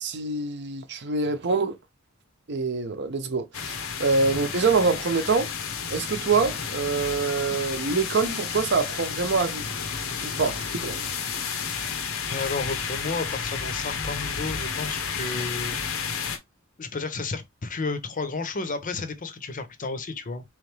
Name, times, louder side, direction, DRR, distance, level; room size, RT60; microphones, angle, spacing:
voice 1, 0.0-1.8 2.5-5.5 5.9-9.7 10.2-11.0, right 4 dB, 55° right, 0.7 m, -25 dB
sound 1, 3.5-16.4, left 6 dB, 80° left, 0.9 m, -31 dB
voice 2, 12.3-15.8 16.8-20.4, left 3 dB, 40° left, 0.7 m, -32 dB
3.8 x 3.2 x 3.2 m
head